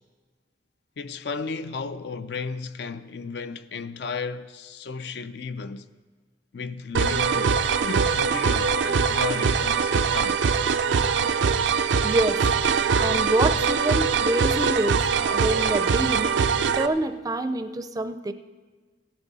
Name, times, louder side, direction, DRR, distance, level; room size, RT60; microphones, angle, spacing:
voice 1, 1.0-5.9 6.5-10.4, left 4 dB, 65° left, 0.5 m, -34 dB
sound 1, 6.9-16.9, right 5 dB, 85° right, 0.5 m, -22 dB
voice 2, 12.0-12.5 13.0-15.0 15.3-16.3 16.8-18.3, right 2 dB, 20° right, 0.5 m, -26 dB
16.5 x 11.0 x 4.1 m
head